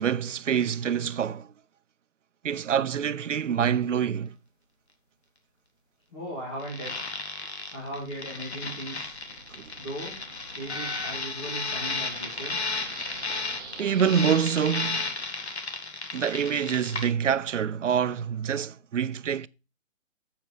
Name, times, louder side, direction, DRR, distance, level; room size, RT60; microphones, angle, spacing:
voice 1, 0.0-1.5 2.4-4.4 9.5-9.7 13.8-15.1 16.1-19.5, right 8 dB, 65° right, 0.6 m, -26 dB
voice 2, 6.1-6.9 7.7-9.2 9.8-10.2 10.5-12.6, right 1 dB, 20° left, 1.8 m, -37 dB
sound 1, 6.6-17.1, left 3 dB, 55° left, 1.7 m, -34 dB
Noise Rising Low Pass, 7.5-14.8, right 4 dB, 20° right, 1.2 m, -47 dB
7.7 x 7.1 x 4.7 m
hypercardioid pair, 180°, 39 cm